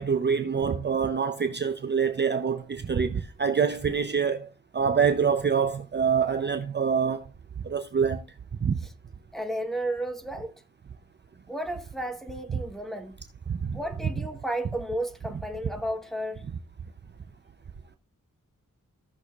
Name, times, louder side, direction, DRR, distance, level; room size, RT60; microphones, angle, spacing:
voice 1, 0.0-4.5 4.7-7.3 7.6-8.2 8.6-8.8 13.5-13.8, right 6 dB, 35° right, 0.5 m, -25 dB
voice 2, 9.3-10.5 11.5-13.2 13.7-16.4, right 1 dB, ahead, 1.1 m, -33 dB
16.0 x 6.3 x 2.3 m
wide cardioid pair, 165°, 32 cm